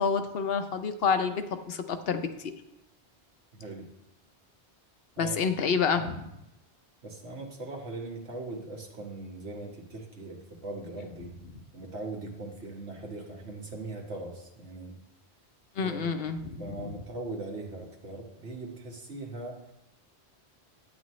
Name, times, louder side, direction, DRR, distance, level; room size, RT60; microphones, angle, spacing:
voice 1, 0.0-2.5 5.2-6.3 15.8-16.6, left 5 dB, 65° left, 8 dB, 0.9 m, -28 dB
voice 2, 3.5-3.9 5.2-5.4 5.9-6.1 7.0-11.4 11.7-15.0 15.8-16.2 16.6-19.7, right 2 dB, 85° right, 0 dB, 1.9 m, -40 dB
10.5 x 8.8 x 3.1 m, 0.87 s
omnidirectional pair, 1.1 m